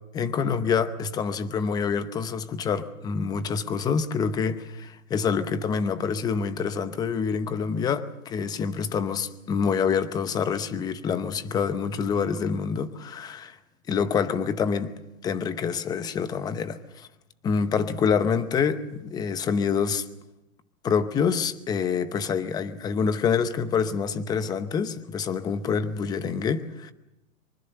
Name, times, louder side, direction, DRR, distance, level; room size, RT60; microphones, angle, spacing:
voice 1, 0.1-13.6 13.9-14.9 15.2-17.1 17.4-20.0 20.8-26.9, left 6 dB, 10° left, 0.8 m, -26 dB
24.5 x 24.0 x 6.7 m
hypercardioid pair, 140°, 42 cm